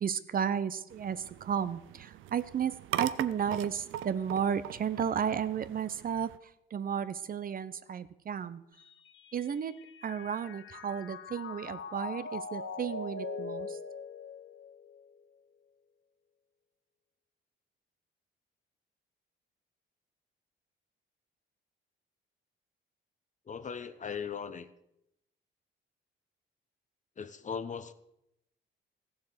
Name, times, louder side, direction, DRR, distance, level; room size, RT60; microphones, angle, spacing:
voice 1, 0.0-8.6 9.3-13.8, right 8 dB, 45° right, 14 dB, 0.7 m, -33 dB
sound 1, 0.9-6.4, right 12 dB, 85° right, 0.6 m, -40 dB
Mallet percussion, 8.8-15.2, left 4 dB, 70° left, 0.9 m, -42 dB
voice 2, 23.5-24.7 27.2-27.9, left 6 dB, 40° left, 13 dB, 0.9 m, -38 dB
14.5 x 7.3 x 6.6 m, 0.81 s
cardioid pair, 90°, 20 cm